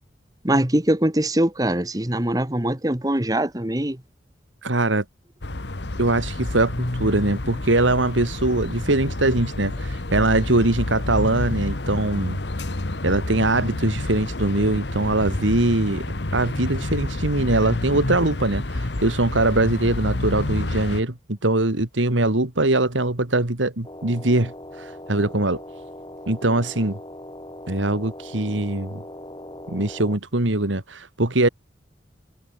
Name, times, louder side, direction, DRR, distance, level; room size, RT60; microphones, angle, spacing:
voice 1, 0.4-4.0, right 1 dB, 20° right, 1.4 m, -22 dB
voice 2, 4.6-5.0 6.0-12.4 13.0-16.0 16.3-25.6 26.3-27.0 27.7-29.0 29.7-31.5, right 2 dB, 85° right, 2.3 m, -22 dB
sound 1, 5.4-21.0, left 2 dB, 65° left, 1.4 m, -29 dB
sound 2, 23.8-30.2, left 1 dB, 20° left, 7.2 m, -40 dB
head